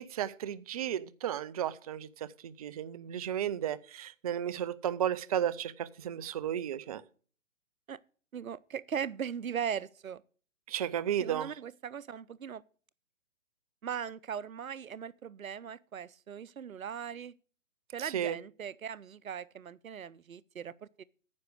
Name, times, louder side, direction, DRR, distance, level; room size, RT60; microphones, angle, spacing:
voice 1, 0.0-2.1 2.4-7.0 10.7-11.5 18.0-18.4, right 10 dB, 30° right, 0.5 m, -33 dB
voice 2, 8.3-10.2 11.2-12.6 13.8-17.3 17.9-21.0, right 8 dB, 90° right, 0.7 m, -39 dB
9.6 x 6.2 x 8.2 m
hypercardioid pair, 140°, 40 cm